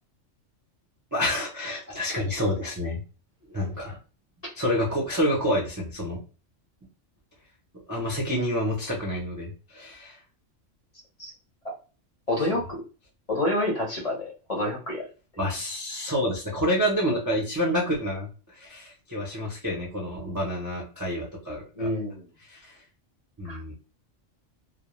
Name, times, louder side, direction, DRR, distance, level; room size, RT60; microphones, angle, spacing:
voice 1, 1.1-3.0 3.5-4.0 4.5-6.2 7.9-10.2 15.4-21.9 22.5-22.7 23.4-23.7, equal, 25° right, -4 dB, 0.3 m, -28 dB
voice 2, 12.3-12.8 13.3-15.0 21.8-22.3 23.4-23.6, left 1 dB, 40° left, -2 dB, 0.7 m, -28 dB
2.2 x 2.0 x 2.9 m, 0.35 s
omnidirectional pair, 1.3 m